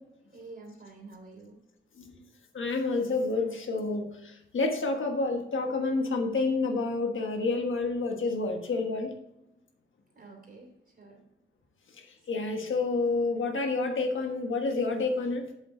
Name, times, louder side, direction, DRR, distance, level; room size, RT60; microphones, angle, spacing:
voice 1, 0.3-1.6 10.1-10.7 11.0-11.2, right 3 dB, 45° right, -1 dB, 3.2 m, -48 dB
voice 2, 2.5-9.1 12.3-15.5, left 3 dB, 80° left, 4 dB, 1.4 m, -29 dB
8.1 x 7.2 x 3.8 m, 0.84 s
wide cardioid pair, 160°, 20 cm